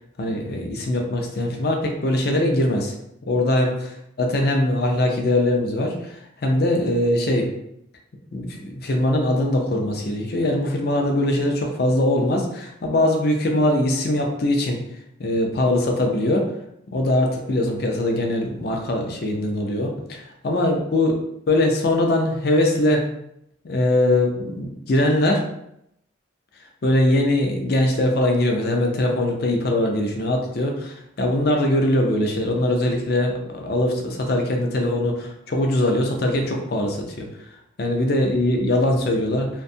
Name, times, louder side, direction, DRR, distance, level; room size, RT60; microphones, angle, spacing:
voice 1, 0.2-2.9 3.3-3.7 4.2-7.5 8.3-14.8 15.2-16.5 16.9-21.1 21.5-23.1 23.6-25.4 26.8-37.3 37.8-39.5, left 1 dB, 50° left, 2 dB, 0.4 m, -21 dB
2.6 x 2.2 x 2.6 m, 0.77 s
head